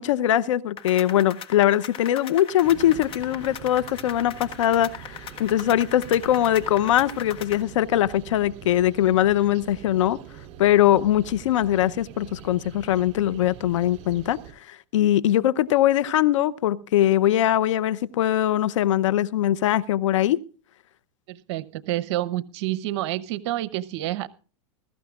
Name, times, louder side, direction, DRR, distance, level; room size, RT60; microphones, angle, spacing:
voice 1, 0.0-10.2 10.6-14.4 14.7-20.4, left 12 dB, 80° left, 0.8 m, -21 dB
sound 1, 0.8-7.6, left 8 dB, 35° left, 1.4 m, -39 dB
sound 2, 2.6-14.5, right 11 dB, 45° right, 3.4 m, -44 dB
voice 2, 21.3-24.3, right 15 dB, 60° right, 0.9 m, -28 dB
21.0 x 13.5 x 2.4 m
hypercardioid pair, 120°, 16 cm